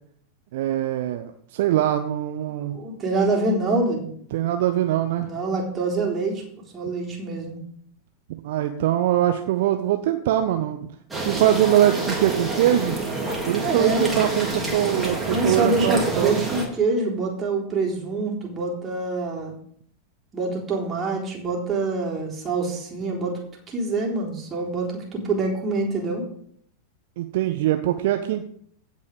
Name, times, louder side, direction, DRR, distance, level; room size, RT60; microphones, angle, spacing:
voice 1, 0.5-2.8 4.3-5.3 8.4-10.8 11.2-13.0 13.5-16.4 27.2-28.5, right 12 dB, 55° right, 7 dB, 0.9 m, -22 dB
voice 2, 2.7-4.1 5.2-6.4 6.7-7.6 13.6-14.1 15.3-19.5 20.3-23.4 23.7-26.2, right 3 dB, 20° right, -2 dB, 3.8 m, -25 dB
sound 1, 11.1-16.7, right 2 dB, 5° right, 3.6 m, -28 dB
16.0 x 5.4 x 5.2 m, 0.64 s
figure-of-eight pair, 90°, 0 cm